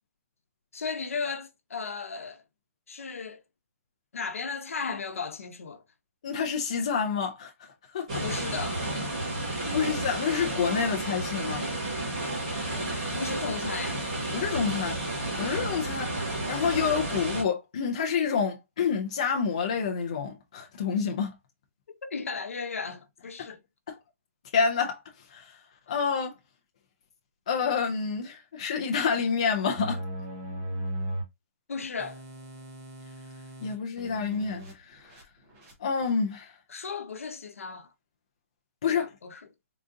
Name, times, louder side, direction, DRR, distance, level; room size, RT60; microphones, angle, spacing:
voice 1, 0.7-2.4 2.9-3.4 4.1-5.8 8.2-8.8 12.7-14.0 22.0-23.6 31.7-32.2 36.7-37.9 38.9-39.5, left 5 dB, 70° left, 0.8 m, -35 dB
voice 2, 6.2-7.5 7.9-8.2 9.7-11.7 14.3-21.3 23.9-24.0 24.5-25.0 25.3-25.5 25.9-26.3 27.5-30.0 33.6-34.6 34.9-35.1 35.8-36.5 38.8-39.1, left 6 dB, 30° left, 0.4 m, -28 dB
sound 1, 8.1-17.4, right 1 dB, 30° right, 1.5 m, -31 dB
sound 2, 29.7-31.2 31.7-34.7 35.0-35.2 35.5-35.7 36.0-36.1, right 1 dB, 10° right, 0.6 m, -37 dB
3.7 x 2.4 x 2.5 m
hypercardioid pair, 180°, 8 cm